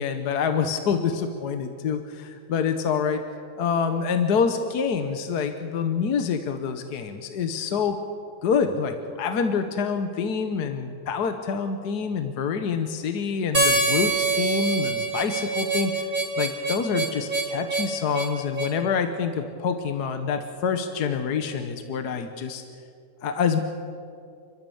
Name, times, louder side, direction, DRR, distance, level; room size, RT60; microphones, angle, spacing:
voice 1, 0.0-3.2 3.6-8.0 8.4-16.1 16.4-22.6 23.2-23.6, left 6 dB, 70° left, 7 dB, 1.6 m, -26 dB
Harmonica, 13.5-18.8, right 3 dB, 55° right, 3.1 m, -25 dB
30.0 x 12.5 x 7.1 m, 2.4 s
omnidirectional pair, 1.8 m